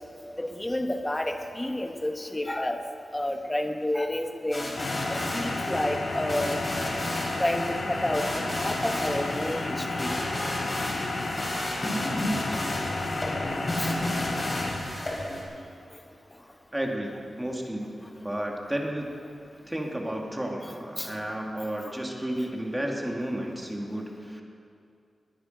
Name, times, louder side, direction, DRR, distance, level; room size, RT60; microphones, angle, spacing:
voice 1, 0.4-2.8 3.1-4.7 5.1-6.6 7.4-10.1 13.8-13.9 21.0-21.1, left 1 dB, 15° left, 5 dB, 1.2 m, -30 dB
sound 1, 4.5-15.4, left 1 dB, 35° left, 4.5 m, -33 dB
sound 2, 4.8-14.7, left 2 dB, 70° left, 2.1 m, -32 dB
voice 2, 16.7-18.0 18.2-19.1 19.7-24.4, right 1 dB, 10° right, 0 dB, 2.1 m, -32 dB
21.0 x 10.0 x 5.2 m, 2.5 s
wide cardioid pair, 95°, 0 cm